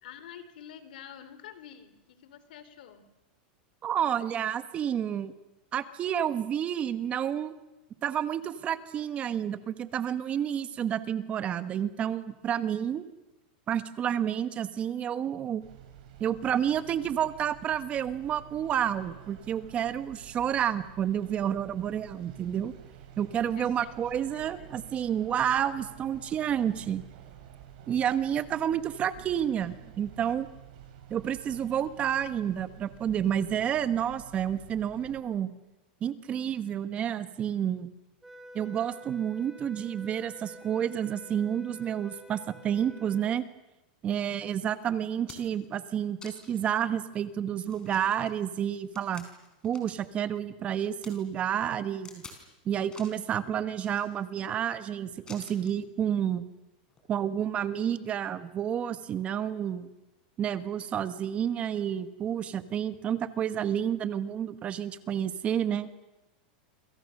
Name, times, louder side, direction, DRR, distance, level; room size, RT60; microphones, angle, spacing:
voice 1, 0.0-3.1 20.1-20.3 23.5-24.7, left 9 dB, 75° left, 12 dB, 3.7 m, -48 dB
voice 2, 3.8-5.3 5.7-7.5 8.0-13.0 13.7-15.6 16.2-22.7 23.2-27.0 27.9-30.5 31.1-35.5 36.0-37.9 38.5-43.4 44.0-49.2 49.6-52.2 52.6-56.4 57.1-59.9 60.4-65.9, right 9 dB, 25° right, 12 dB, 1.2 m, -30 dB
sound 1, 15.6-35.2, right 10 dB, 60° right, 6.4 m, -50 dB
sound 2, 38.2-43.4, right 1 dB, 5° right, 2.8 m, -49 dB
sound 3, 44.5-44.6 45.0-45.7 46.2-46.7 47.1-47.2 47.6-50.0 50.3-51.1 52.0-52.4 52.8-53.2 53.7-54.4 55.3-55.8 56.9-57.0, left 4 dB, 15° left, 4.8 m, -50 dB
28.0 x 26.5 x 6.6 m, 0.98 s
supercardioid pair, 150°, 5 cm